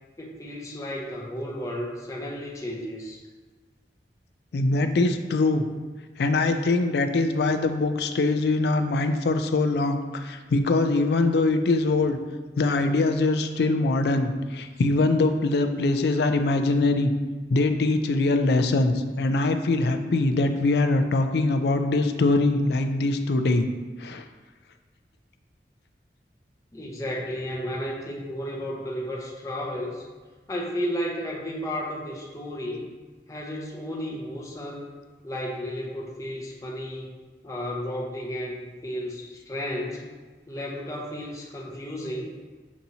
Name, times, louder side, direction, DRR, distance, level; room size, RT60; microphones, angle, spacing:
voice 1, 0.2-3.2 26.7-30.1 30.5-32.9 33.3-34.9 35.2-37.1 37.4-40.1 40.5-42.4, equal, 20° left, -3 dB, 0.6 m, -33 dB
voice 2, 4.5-5.6 6.2-12.2 12.6-17.1 17.5-23.7 24.0-24.2, left 2 dB, 70° left, 8 dB, 0.4 m, -23 dB
7.1 x 2.7 x 2.8 m, 1.3 s
head